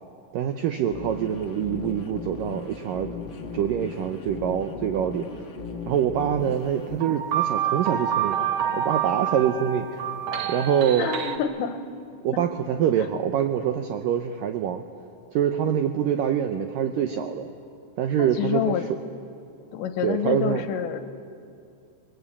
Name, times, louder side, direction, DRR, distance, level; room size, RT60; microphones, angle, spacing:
voice 1, 0.3-3.1 3.5-5.4 5.9-8.4 8.7-10.0 10.5-11.1 12.2-14.8 15.3-17.5 18.0-19.0 20.0-20.7, right 9 dB, 85° right, 7 dB, 1.9 m, -25 dB
sound 1, 0.9-7.0, left 5 dB, 55° left, 1.3 m, -37 dB
sound 2, 7.0-11.4, right 9 dB, 65° right, 1.8 m, -27 dB
voice 2, 11.0-11.8 18.2-18.8 19.7-21.1, left 9 dB, 85° left, 9 dB, 3.4 m, -27 dB
28.5 x 21.0 x 8.5 m, 2.5 s
omnidirectional pair, 5.1 m